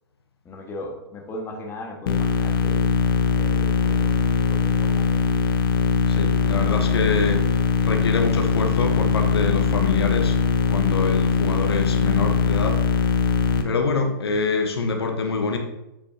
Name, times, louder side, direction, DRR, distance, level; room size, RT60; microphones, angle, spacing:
voice 1, 0.4-2.8 3.4-5.1, left 1 dB, 20° left, 0 dB, 1.6 m, -37 dB
sound 1, 2.1-13.6, left 6 dB, 65° left, 1.0 m, -21 dB
voice 2, 6.1-10.4 10.7-12.8 13.6-15.6, left 4 dB, 85° left, 4 dB, 1.2 m, -25 dB
8.0 x 6.9 x 2.8 m, 0.89 s
hypercardioid pair, 125°, 13 cm